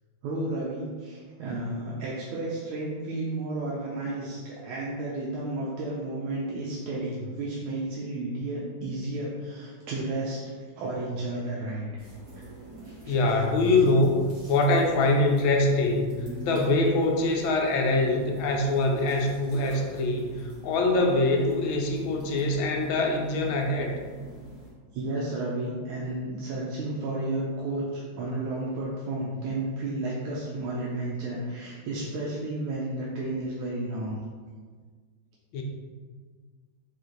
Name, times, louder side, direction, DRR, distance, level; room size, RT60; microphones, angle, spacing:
voice 1, 0.2-10.4 10.8-12.1 12.4-12.5 12.8-13.1 24.9-34.2, right 2 dB, 90° right, -5 dB, 1.5 m, -32 dB
sound 1, 12.0-24.7, right 1 dB, 45° right, 1.7 m, -47 dB
voice 2, 13.1-14.2 14.5-16.1 16.4-23.9 35.5-35.6, left 2 dB, 80° left, 2 dB, 1.3 m, -24 dB
4.5 x 2.5 x 3.7 m, 1.5 s
omnidirectional pair, 2.3 m